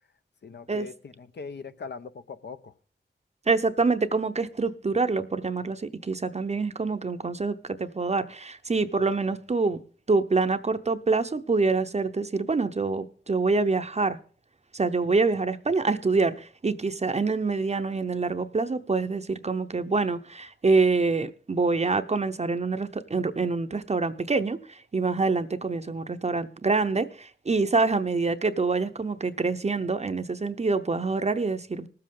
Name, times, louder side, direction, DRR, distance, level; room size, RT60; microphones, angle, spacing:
voice 1, 0.4-2.7, left 5 dB, 65° left, 0.8 m, -41 dB
voice 2, 3.5-9.8 10.1-14.2 14.7-31.9, right 3 dB, 35° right, 0.7 m, -26 dB
19.5 x 7.7 x 3.7 m
wide cardioid pair, 85°, 19 cm